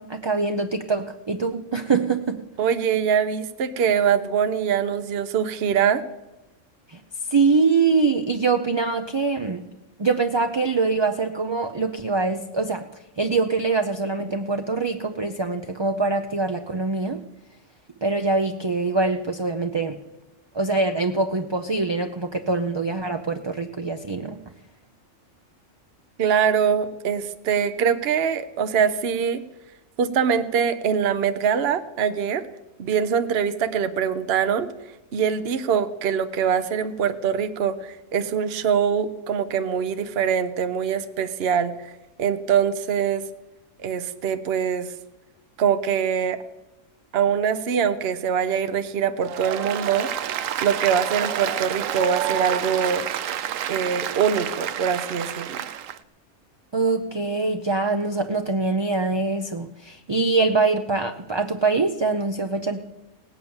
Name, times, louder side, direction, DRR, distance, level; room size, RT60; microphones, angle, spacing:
voice 1, 0.0-2.4 6.9-7.0 7.3-9.7 10.0-12.9 13.2-17.2 18.0-20.0 20.5-24.4 56.7-62.8, right 3 dB, 30° right, 6 dB, 0.5 m, -24 dB
voice 2, 2.6-6.0 26.2-29.4 30.0-32.5 32.8-34.7 35.1-41.9 42.2-43.2 43.8-44.9 45.6-46.4 47.1-50.1 50.6-53.1 53.7-55.6, right 7 dB, 55° right, 10 dB, 0.9 m, -23 dB
Applause, 49.2-56.0, right 10 dB, 85° right, 1.1 m, -29 dB
18.0 x 8.8 x 7.1 m, 1.0 s
omnidirectional pair, 1.3 m